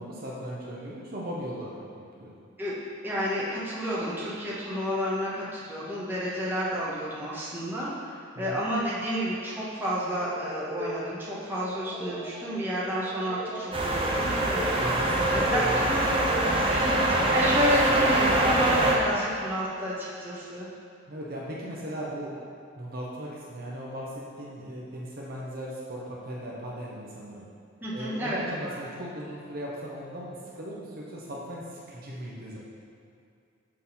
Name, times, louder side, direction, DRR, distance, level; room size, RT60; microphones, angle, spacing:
voice 1, 0.0-2.4 8.4-8.6 14.8-16.2 21.1-22.3 22.8-27.4 27.9-32.6, equal, 45° right, -4 dB, 0.9 m, -38 dB
voice 2, 3.0-14.9 15.3-15.9 16.4-20.7 27.8-28.7, equal, 10° right, -8 dB, 1.2 m, -30 dB
sound 1, 10.1-16.4, right 1 dB, 10° left, 0.8 m, -39 dB
sound 2, 13.7-19.0, right 1 dB, 25° right, 0.6 m, -24 dB
6.7 x 4.0 x 5.5 m, 2.5 s
head